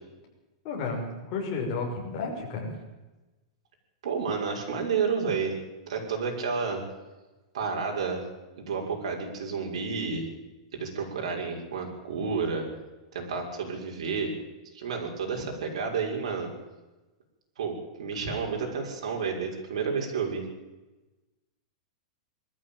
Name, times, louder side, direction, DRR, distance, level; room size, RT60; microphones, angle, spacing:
voice 1, 0.6-2.7, left 4 dB, 35° left, 0 dB, 5.9 m, -32 dB
voice 2, 4.0-5.5 5.9-6.8 7.5-8.2 8.6-10.3 10.7-12.7 13.1-14.3 14.7-16.5 17.6-20.5, right 5 dB, 75° right, 1 dB, 6.3 m, -30 dB
21.0 x 14.0 x 9.1 m, 1.1 s
supercardioid pair, 175°, 3 cm